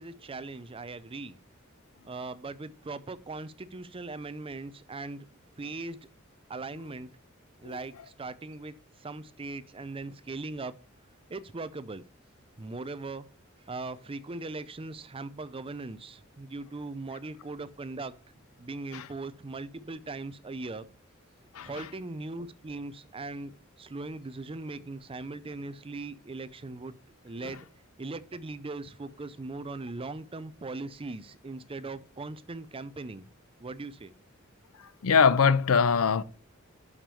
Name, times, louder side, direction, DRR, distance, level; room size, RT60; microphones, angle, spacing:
voice 1, 0.0-1.4 2.0-5.3 5.6-6.0 6.5-7.1 7.6-10.7 11.3-12.0 12.6-13.3 13.7-18.2 18.6-20.9 21.6-27.0 27.2-27.7 28.0-33.3 33.6-34.1, right 3 dB, 25° right, 0.5 m, -39 dB
voice 2, 21.5-21.9 35.0-36.2, left 6 dB, 85° left, 0.6 m, -23 dB
6.6 x 6.2 x 6.9 m
head